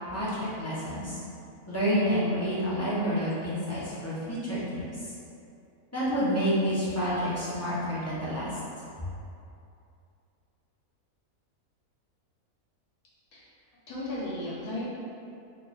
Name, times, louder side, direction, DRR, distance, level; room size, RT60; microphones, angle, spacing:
voice 1, 0.6-1.2 1.7-5.1 5.9-8.5, equal, 20° left, -11 dB, 0.4 m, -29 dB
voice 2, 13.9-14.8, left 1 dB, 80° left, -7 dB, 1.2 m, -34 dB
3.1 x 2.3 x 3.9 m, 2.6 s
omnidirectional pair, 1.6 m